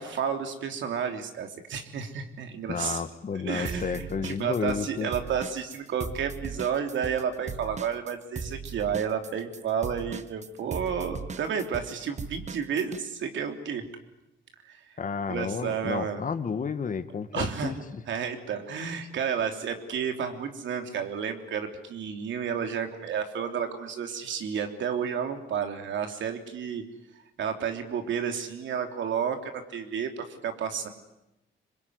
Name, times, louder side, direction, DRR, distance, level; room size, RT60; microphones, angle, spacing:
voice 1, 0.0-3.0 3.3-13.8 14.6-15.0 15.3-16.2 17.3-17.7 18.1-26.8 27.4-30.9, right 7 dB, 70° right, 5 dB, 3.3 m, -31 dB
voice 2, 2.7-5.1 15.0-18.0, left 6 dB, 40° left, 10 dB, 1.9 m, -31 dB
sound 1, 3.7-4.9 5.1-13.0, right 5 dB, 35° right, 1.3 m, -38 dB
25.5 x 22.0 x 9.7 m, 0.92 s
cardioid pair, 90°, 20 cm